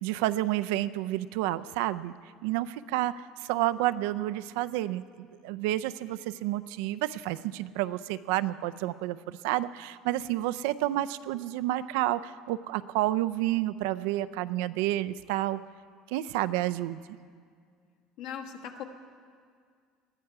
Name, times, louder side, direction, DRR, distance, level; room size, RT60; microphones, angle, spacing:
voice 1, 0.0-2.1 2.4-15.6 16.1-17.0, right 15 dB, 85° right, 13 dB, 0.4 m, -30 dB
voice 2, 18.2-18.8, left 8 dB, 65° left, 2 dB, 1.4 m, -39 dB
20.5 x 13.5 x 4.8 m, 2.1 s
cardioid pair, 165°, 0 cm